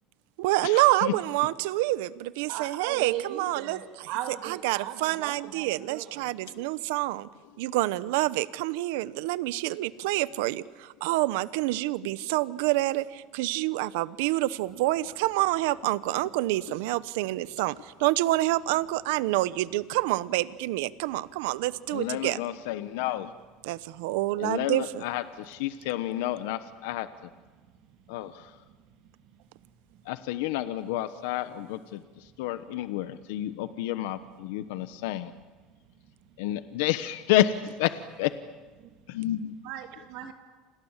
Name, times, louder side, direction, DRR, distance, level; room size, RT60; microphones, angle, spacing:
voice 1, 0.4-7.3 7.6-22.4 23.6-25.0, right 18 dB, 85° right, 17 dB, 0.9 m, -27 dB
voice 2, 2.5-6.3 38.8-38.9 39.6-40.3, right 11 dB, 65° right, 5 dB, 3.0 m, -37 dB
voice 3, 21.9-23.3 24.4-27.1 28.1-28.5 30.1-32.0 32.4-35.3 36.4-38.3 39.1-39.5, left 13 dB, 85° left, 12 dB, 1.0 m, -30 dB
29.5 x 27.0 x 7.4 m, 1.4 s
cardioid pair, 135°, 0 cm